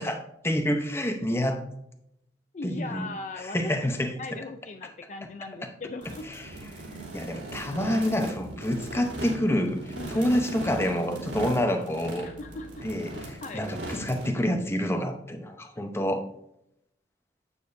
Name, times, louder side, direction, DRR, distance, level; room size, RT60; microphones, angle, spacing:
voice 1, 0.0-1.6 2.6-3.1 3.4-4.1 5.6-5.7 6.3-6.4 6.7-6.8 7.1-12.3 12.8-16.2, equal, 15° left, 5 dB, 0.8 m, -28 dB
voice 2, 2.5-3.7 4.2-6.3 10.0-10.3 12.2-12.8 13.4-13.7, left 3 dB, 40° left, 7 dB, 0.4 m, -39 dB
sound 1, 6.0-14.3, right 2 dB, 75° right, 3.1 m, -39 dB
9.1 x 7.0 x 2.6 m, 0.78 s
head